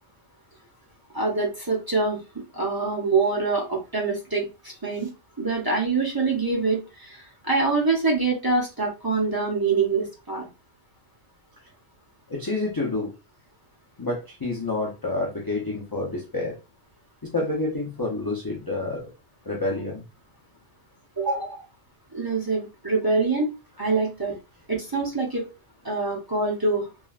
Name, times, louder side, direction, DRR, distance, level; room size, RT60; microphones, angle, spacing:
voice 1, 1.1-5.1 5.4-10.5 21.2-21.6 22.1-23.5 23.8-24.3 24.7-25.4 25.8-26.9, right 3 dB, 25° right, 0.7 m, -25 dB
voice 2, 12.3-13.1 14.0-16.6 17.3-19.1 19.5-20.0, left 2 dB, 30° left, 0.4 m, -28 dB
3.2 x 2.3 x 2.3 m
omnidirectional pair, 1.2 m